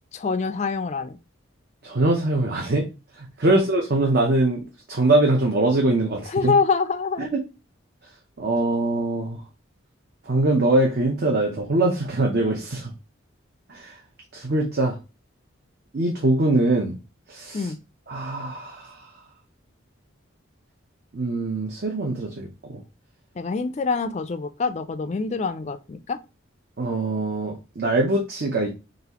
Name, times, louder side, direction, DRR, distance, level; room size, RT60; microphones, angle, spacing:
voice 1, 0.1-1.2 3.5-3.6 6.3-7.3 17.5-17.8 23.4-26.2, left 4 dB, 35° left, 0.3 m, -25 dB
voice 2, 1.8-2.9 3.2-6.5 7.2-7.4 8.4-9.4 10.3-12.9 13.7-13.9 14.3-15.0 15.9-17.0 17.3-17.7 18.1-19.1 21.1-22.8 26.8-28.7, right 2 dB, 50° right, 0.7 m, -23 dB
4.0 x 3.2 x 2.9 m
head